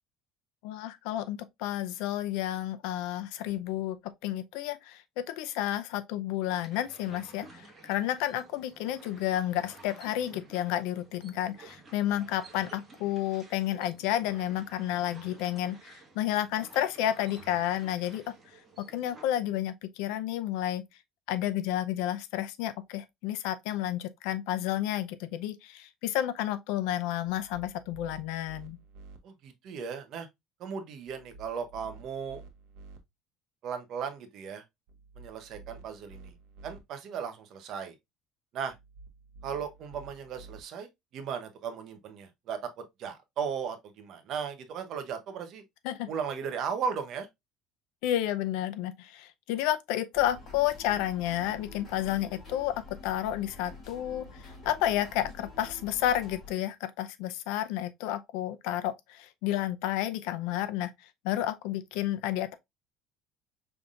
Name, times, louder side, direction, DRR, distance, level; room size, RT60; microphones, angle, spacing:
voice 1, 0.6-18.3 18.8-20.8 21.3-28.8 45.8-46.1 48.0-60.9 61.2-62.5, left 12 dB, 80° left, 0.5 m, -31 dB
sound 1, 6.5-19.2, right 3 dB, 20° right, 1.5 m, -53 dB
sound 2, 27.3-29.2 31.1-33.0 34.9-36.8 38.7-40.6, right 4 dB, 75° right, 0.8 m, -51 dB
voice 2, 29.2-30.3 30.6-32.4 33.6-34.6 35.2-36.3 36.6-37.9 38.5-38.7 39.4-45.6 46.1-47.3, right 6 dB, 45° right, 0.9 m, -36 dB
sound 3, 50.1-56.5, left 3 dB, 25° left, 3.3 m, -47 dB
5.4 x 3.4 x 2.4 m
cardioid pair, 160°, 0 cm